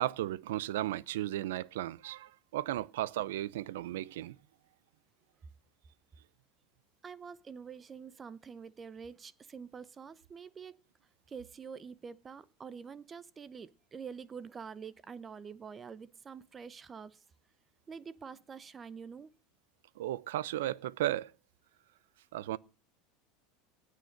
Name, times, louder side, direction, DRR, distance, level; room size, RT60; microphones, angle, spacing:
voice 1, 0.0-4.4 20.0-21.3 22.3-22.6, right 14 dB, 90° right, 0.6 m, -35 dB
voice 2, 7.0-10.8 11.3-17.2 17.9-19.3, right 6 dB, 25° right, 0.7 m, -46 dB
18.0 x 6.6 x 6.5 m
supercardioid pair, 130°, 0 cm